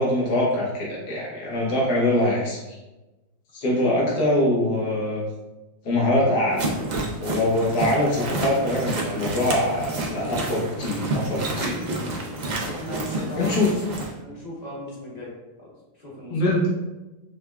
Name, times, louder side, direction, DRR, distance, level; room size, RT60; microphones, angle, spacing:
voice 1, 0.0-2.8 3.5-5.2 5.8-6.6 7.2-11.9 13.3-13.7 16.3-16.7, left 1 dB, 85° left, -5 dB, 1.7 m, -23 dB
sound 1, 6.5-14.1, right 2 dB, 60° right, 0.4 m, -29 dB
voice 2, 12.6-13.7 14.2-15.3 15.6-16.7, left 1 dB, 30° left, -5 dB, 1.0 m, -37 dB
5.1 x 3.3 x 2.3 m, 1.1 s
omnidirectional pair, 1.7 m